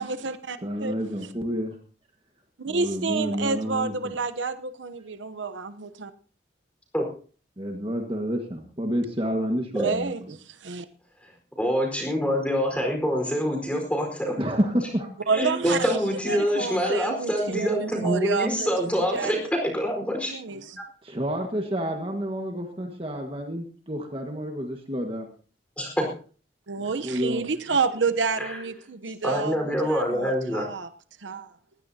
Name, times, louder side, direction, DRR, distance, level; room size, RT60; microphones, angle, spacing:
voice 1, 0.0-0.9 2.6-6.1 9.8-10.2 10.6-10.9 15.3-16.0 16.3-19.5 20.3-20.8 26.7-30.9 31.2-31.5, right 4 dB, 90° right, 12 dB, 0.9 m, -29 dB
voice 2, 0.6-1.7 2.7-4.1 7.6-10.1 14.4-15.1 21.0-25.3 26.8-27.4, equal, 30° right, 3 dB, 1.6 m, -29 dB
voice 3, 11.6-14.4 15.3-20.3 25.8-26.1 28.4-28.6 29.2-30.6, equal, 5° left, 2 dB, 4.5 m, -25 dB
21.0 x 15.5 x 2.8 m, 0.40 s
head